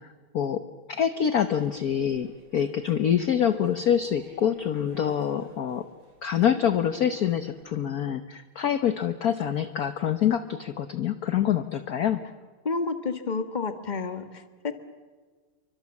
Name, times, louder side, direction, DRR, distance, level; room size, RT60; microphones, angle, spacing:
voice 1, 0.9-2.3 2.5-5.8 6.2-12.2, left 9 dB, 55° left, 10 dB, 1.2 m, -25 dB
sound 1, 1.3-7.6, right 2 dB, 65° right, 5.7 m, -53 dB
voice 2, 12.6-14.7, left 4 dB, 25° left, 8 dB, 1.5 m, -30 dB
29.5 x 24.5 x 7.2 m, 1.5 s
omnidirectional pair, 2.3 m